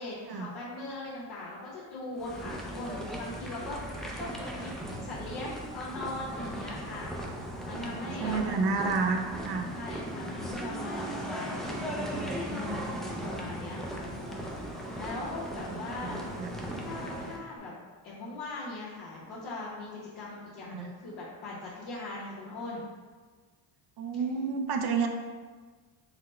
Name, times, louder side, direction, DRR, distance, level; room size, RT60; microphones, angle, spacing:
voice 1, 0.0-3.8 4.1-4.7 5.0-7.1 7.6-8.5 9.7-11.9 12.4-14.5 15.0-16.4 16.8-17.7 18.0-22.8, left 2 dB, 75° left, -8 dB, 1.0 m, -40 dB
sound 1, 2.2-17.4, right 1 dB, ahead, 0.4 m, -37 dB
voice 2, 7.8-9.7 13.1-13.3 15.7-16.5 20.7-20.9 24.0-25.1, right 4 dB, 55° right, 4 dB, 0.5 m, -31 dB
4.0 x 2.1 x 4.2 m, 1.4 s
cardioid pair, 90°, 48 cm